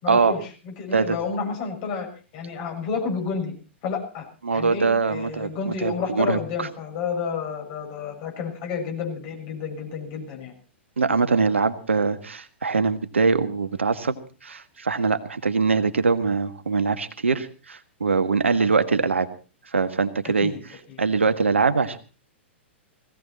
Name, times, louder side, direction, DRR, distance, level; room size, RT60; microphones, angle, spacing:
voice 1, 0.0-3.5 3.8-4.2 4.5-10.5 20.2-20.6 20.9-21.0, left 5 dB, 45° left, 2 dB, 6.7 m, -30 dB
voice 2, 4.4-6.7 11.0-14.2 14.4-19.3 19.7-20.5 21.0-22.0, right 4 dB, 80° right, 10 dB, 1.6 m, -23 dB
19.0 x 16.5 x 4.3 m, 0.36 s
figure-of-eight pair, 105°, 7 cm